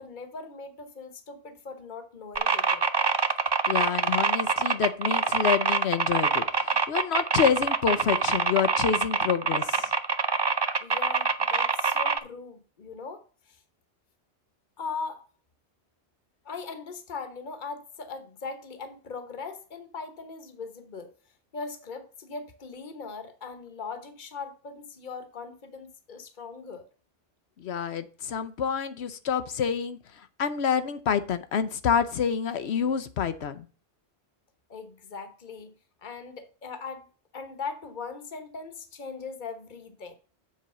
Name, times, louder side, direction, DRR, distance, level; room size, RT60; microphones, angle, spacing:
voice 1, 0.0-2.9 10.8-13.6 14.8-15.2 16.4-21.1 21.5-26.9 34.7-35.7 36.0-37.1 37.3-40.1, left 4 dB, 45° left, 1.3 m, -40 dB
sound 1, 2.4-12.2, right 4 dB, 35° right, 0.4 m, -25 dB
voice 2, 3.7-9.9 27.6-33.6, left 7 dB, 70° left, 1.0 m, -27 dB
7.7 x 4.5 x 6.8 m
omnidirectional pair, 1.1 m